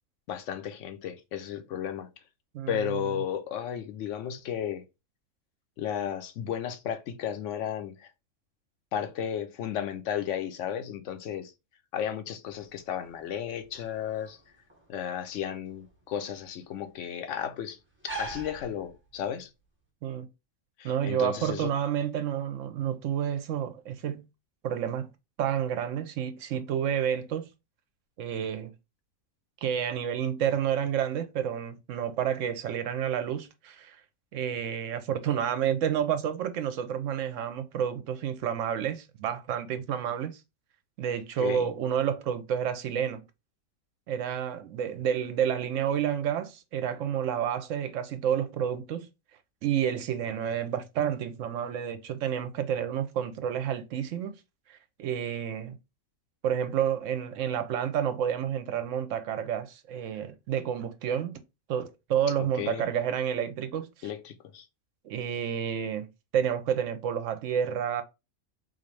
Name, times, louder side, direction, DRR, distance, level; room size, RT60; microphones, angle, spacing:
voice 1, 0.3-2.1 2.7-4.8 5.8-8.1 8.9-11.5 11.9-14.4 14.9-17.8 18.1-19.5 20.8-21.7 41.4-41.7 62.4-62.9 64.0-64.7, left 9 dB, 70° left, 0.9 m, -34 dB
sound 1, 12.5-19.4, right 2 dB, 10° right, 0.6 m, -45 dB
voice 2, 20.8-24.2 24.6-25.1 25.4-27.5 28.2-28.7 29.6-34.0 34.3-40.4 41.0-43.2 44.1-49.1 49.6-54.4 54.7-55.8 56.4-61.4 61.7-63.9 65.0-66.1 66.3-68.0, right 9 dB, 70° right, 0.8 m, -30 dB
3.9 x 2.6 x 3.1 m
omnidirectional pair, 1.4 m